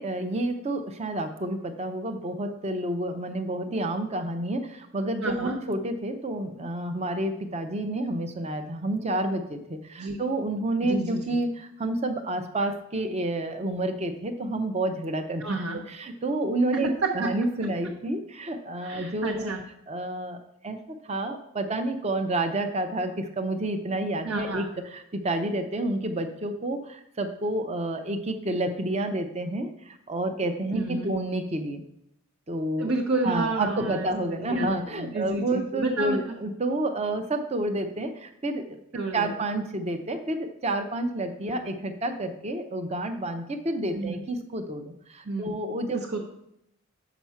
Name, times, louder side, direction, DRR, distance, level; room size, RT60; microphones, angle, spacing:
voice 1, 0.0-4.6 4.9-9.6 10.2-11.5 11.8-15.4 15.9-16.9 17.1-19.5 19.9-20.4 20.6-20.8 21.1-24.7 25.2-26.8 27.2-29.7 30.1-31.8 32.5-32.9 33.2-38.1 38.4-38.6 39.1-40.4 40.6-44.8 45.4-46.0, right 1 dB, 30° right, 6 dB, 0.7 m, -29 dB
voice 2, 5.2-5.6 10.0-10.2 10.8-11.2 15.4-15.8 16.7-17.3 18.8-19.6 24.2-24.7 30.7-31.2 32.8-36.4 38.9-39.3 41.5-41.7 43.9-44.2 45.2-45.5 45.9-46.2, right 3 dB, 70° right, 0 dB, 1.0 m, -30 dB
7.2 x 6.0 x 5.7 m, 0.78 s
head